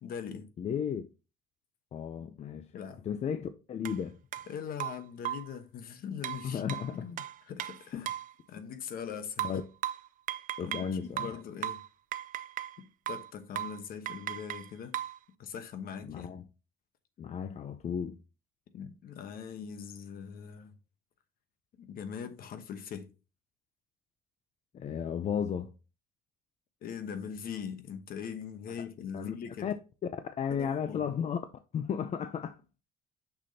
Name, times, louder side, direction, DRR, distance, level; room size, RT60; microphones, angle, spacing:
voice 1, 0.0-0.5 2.7-3.0 4.5-8.1 8.5-9.5 10.6-11.8 12.8-15.0 15.4-16.3 18.7-20.7 21.7-23.1 26.8-29.7 30.5-31.0, left 7 dB, 60° left, 1.0 m, -41 dB
voice 2, 0.6-1.1 1.9-2.7 3.0-4.2 6.4-7.1 7.9-8.1 9.4-9.6 10.6-11.3 16.0-16.5 17.2-18.2 24.7-25.7 29.1-29.4 29.6-29.7 30.4-31.4 31.7-32.6, left 7 dB, 40° left, 0.5 m, -34 dB
sound 1, 3.8-4.0 4.3-4.5 4.8-5.5 6.2-8.3 9.4-10.9 11.2-12.8 13.1-13.3 13.5-13.8 14.1-15.2, right 12 dB, 55° right, 0.5 m, -37 dB
6.3 x 6.1 x 2.7 m
cardioid pair, 110°, 17 cm